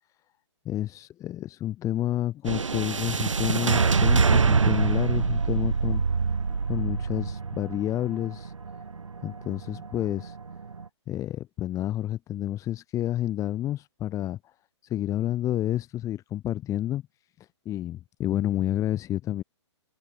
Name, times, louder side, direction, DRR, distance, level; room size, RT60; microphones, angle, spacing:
voice 1, 0.7-6.3 6.7-8.5 9.2-10.4 11.1-14.4 14.8-17.0 17.4-19.4, left 13 dB, 20° left, 5.2 m, -30 dB
sound 1, 2.4-10.8, right 5 dB, 85° right, 0.9 m, -25 dB
open air
hypercardioid pair, 130°, 16 cm